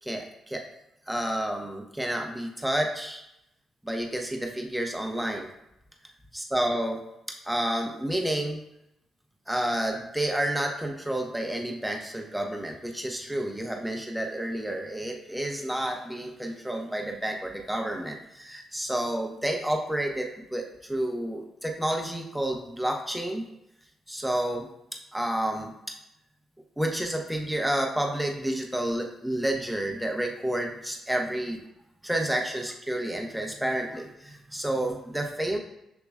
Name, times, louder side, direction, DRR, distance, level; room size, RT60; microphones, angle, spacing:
voice 1, 0.0-0.6 1.1-3.2 3.8-5.5 6.3-7.0 7.4-8.6 9.5-23.5 24.1-24.7 25.1-25.7 26.8-31.6 32.0-35.6, right 1 dB, 5° right, 1 dB, 0.9 m, -30 dB
6.9 x 2.9 x 2.4 m, 0.83 s
hypercardioid pair, 45°, 0 cm